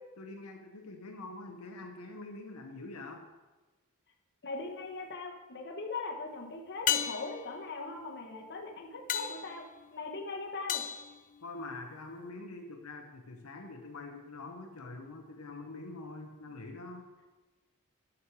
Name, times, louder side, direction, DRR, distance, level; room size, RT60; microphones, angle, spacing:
voice 1, 0.2-3.2 11.4-17.1, left 2 dB, 80° left, 3 dB, 1.0 m, -45 dB
voice 2, 4.4-9.6 9.9-10.8, left 3 dB, 50° left, 2 dB, 1.2 m, -40 dB
sound 1, 4.5-5.1 6.9-12.0 16.5-16.6, left 10 dB, 35° left, 0.4 m, -37 dB
10.0 x 6.5 x 4.8 m, 1.2 s
head